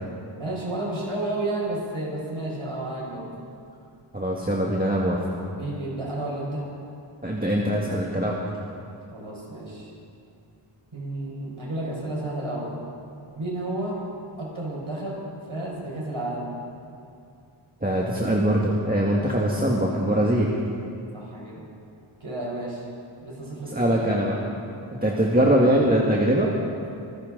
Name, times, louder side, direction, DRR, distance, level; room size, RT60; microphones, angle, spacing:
voice 1, 0.4-3.3 5.5-6.7 9.1-9.9 10.9-12.7 13.3-14.0 14.4-15.2 15.5-16.5 21.1-21.6 22.2-22.8 23.2-24.2 25.0-25.4, right 1 dB, 75° right, -4 dB, 5.1 m, -32 dB
voice 2, 4.1-5.2 7.2-8.4 17.8-20.5 23.7-24.4 25.0-26.5, right 1 dB, 20° right, -3 dB, 1.7 m, -22 dB
25.0 x 15.0 x 3.9 m, 2.5 s
wide cardioid pair, 50°, 49 cm